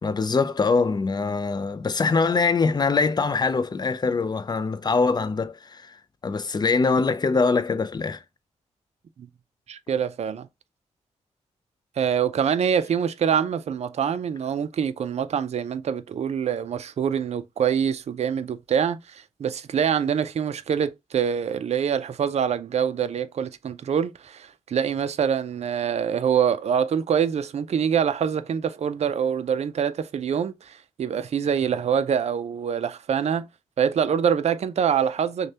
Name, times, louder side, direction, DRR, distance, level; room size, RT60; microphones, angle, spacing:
voice 1, 0.0-8.2, left 4 dB, 35° left, 0.4 m, -23 dB
voice 2, 9.7-10.5 12.0-33.5 33.8-35.5, right 8 dB, 60° right, 0.5 m, -25 dB
6.3 x 2.2 x 2.8 m
cardioid pair, 90°, 12 cm